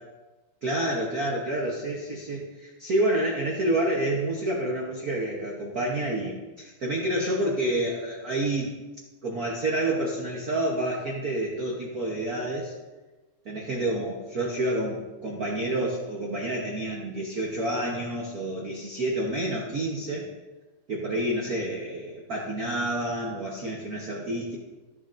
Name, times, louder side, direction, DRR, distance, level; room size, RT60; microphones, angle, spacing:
voice 1, 0.6-8.8 9.2-12.7 13.4-20.3 20.9-24.6, right 1 dB, 75° right, -2 dB, 0.8 m, -28 dB
14.0 x 7.8 x 2.6 m, 1.2 s
omnidirectional pair, 3.4 m